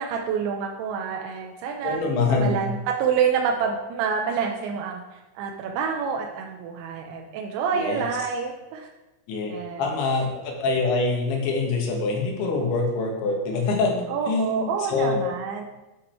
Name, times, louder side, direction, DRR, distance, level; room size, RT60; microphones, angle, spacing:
voice 1, 0.0-2.0 2.3-8.9 9.5-9.8 14.1-15.7, right 6 dB, 90° right, 1 dB, 3.0 m, -27 dB
voice 2, 1.8-2.6 7.7-8.1 9.3-9.5 9.8-15.2, left 3 dB, 90° left, 0 dB, 3.7 m, -25 dB
9.5 x 5.2 x 4.4 m, 1.0 s
omnidirectional pair, 5.1 m